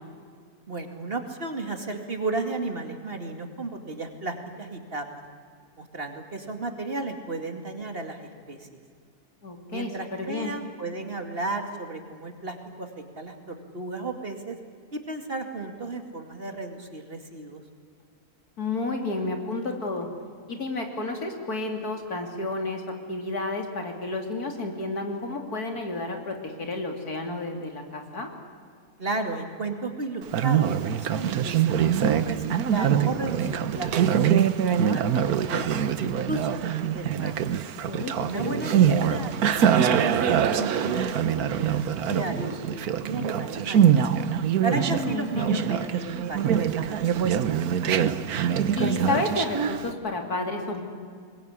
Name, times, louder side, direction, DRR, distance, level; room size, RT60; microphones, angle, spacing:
voice 1, 0.7-5.0 5.8-8.8 9.7-14.6 14.9-17.6 29.0-34.3 34.7-37.3 38.2-44.1 44.6-47.4, right 2 dB, 40° right, 5 dB, 2.6 m, -34 dB
voice 2, 9.4-10.5 18.6-20.1 20.5-22.8 23.1-28.3 37.9-38.9 44.7-45.8 48.8-50.8, left 2 dB, 75° left, 3 dB, 3.5 m, -31 dB
Conversation, 30.2-49.9, right 8 dB, 75° right, 1.5 m, -24 dB
24.5 x 21.0 x 9.9 m, 2.1 s
omnidirectional pair, 1.6 m